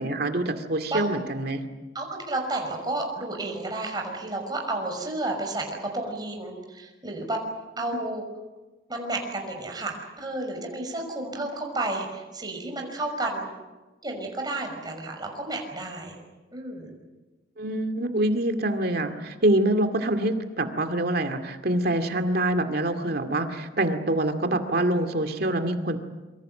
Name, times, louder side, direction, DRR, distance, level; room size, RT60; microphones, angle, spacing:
voice 1, 0.0-1.6 17.6-26.0, right 1 dB, 55° right, 7 dB, 2.3 m, -25 dB
voice 2, 1.9-7.4 7.8-8.2 8.9-13.5 14.0-16.2 16.5-16.9, right 2 dB, 20° right, 2 dB, 5.9 m, -31 dB
26.5 x 24.5 x 7.8 m, 1.2 s
head